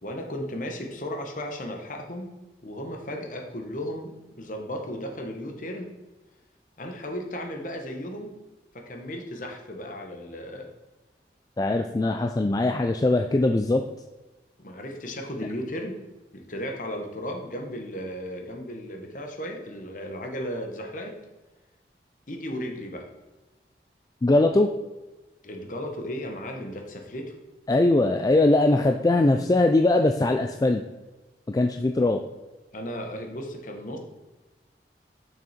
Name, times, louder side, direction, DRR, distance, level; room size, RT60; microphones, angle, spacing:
voice 1, 0.0-2.3 2.6-4.1 4.4-5.9 6.8-8.4 8.7-10.7 14.6-16.0 16.3-21.1 22.3-23.1 25.4-27.3 32.7-34.0, equal, 45° left, 3 dB, 1.2 m, -35 dB
voice 2, 11.6-13.8 24.2-24.7 27.7-30.8 31.5-32.2, left 2 dB, 20° left, 5 dB, 0.3 m, -21 dB
6.3 x 6.2 x 4.3 m, 1.2 s
head